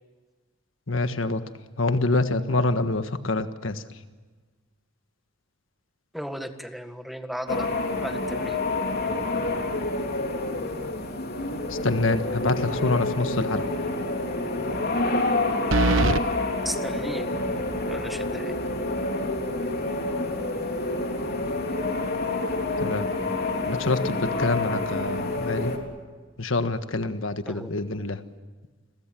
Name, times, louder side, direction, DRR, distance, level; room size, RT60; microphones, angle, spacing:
voice 1, 0.9-1.4 1.8-3.8 11.7-13.6 22.8-23.1 23.7-25.7 26.4-28.2, left 2 dB, 80° left, 9 dB, 1.5 m, -26 dB
voice 2, 6.1-7.7 8.0-8.6 16.6-17.2 17.9-18.5 27.5-27.7, equal, ahead, 7 dB, 1.7 m, -35 dB
sound 1, 7.5-25.8, left 2 dB, 55° left, 3.7 m, -28 dB
sound 2, 12.6-13.1 13.4-13.5 15.7-16.2, right 3 dB, 85° right, 1.0 m, -23 dB
29.5 x 22.5 x 7.7 m, 1.4 s
head